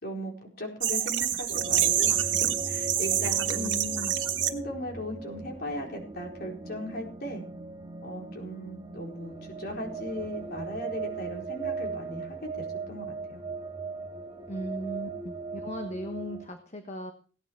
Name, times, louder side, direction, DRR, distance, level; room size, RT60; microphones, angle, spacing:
voice 1, 0.0-3.7 4.4-7.4 8.0-13.4, equal, 55° left, 0 dB, 4.5 m, -38 dB
sound 1, 0.8-4.5, right 11 dB, 80° right, 1.9 m, -27 dB
sound 2, 1.5-16.4, right 3 dB, 30° right, 1.9 m, -39 dB
voice 2, 3.6-4.1 14.5-17.1, equal, 40° left, 6 dB, 1.2 m, -37 dB
17.0 x 10.0 x 4.7 m, 0.41 s
head